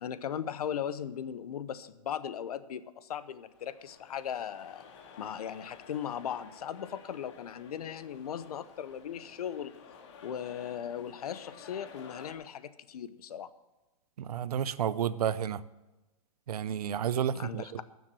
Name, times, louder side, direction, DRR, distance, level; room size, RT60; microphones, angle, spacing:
voice 1, 0.0-4.8 5.2-9.7 10.2-13.5 17.3-17.8, left 9 dB, 80° left, 15 dB, 0.9 m, -38 dB
sound 1, 3.3-12.3, left 6 dB, 50° left, 1.9 m, -52 dB
voice 2, 14.2-15.6 16.5-17.6, right 9 dB, 85° right, 18 dB, 0.7 m, -31 dB
13.5 x 7.2 x 7.5 m, 1.1 s
hypercardioid pair, 155°, 19 cm